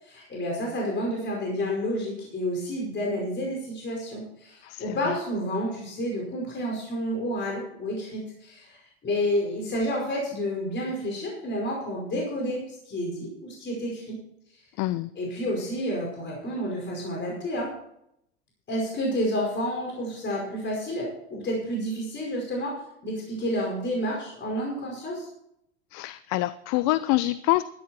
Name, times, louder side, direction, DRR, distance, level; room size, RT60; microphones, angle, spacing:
voice 1, 0.0-8.8 9.0-14.2 15.1-17.7 18.7-22.8 23.0-25.3, equal, 30° left, -2 dB, 5.0 m, -30 dB
voice 2, 4.6-5.2 14.8-15.1 25.9-27.6, left 18 dB, 50° left, 17 dB, 0.5 m, -26 dB
13.0 x 11.5 x 4.3 m, 0.77 s
hypercardioid pair, 85°, 34 cm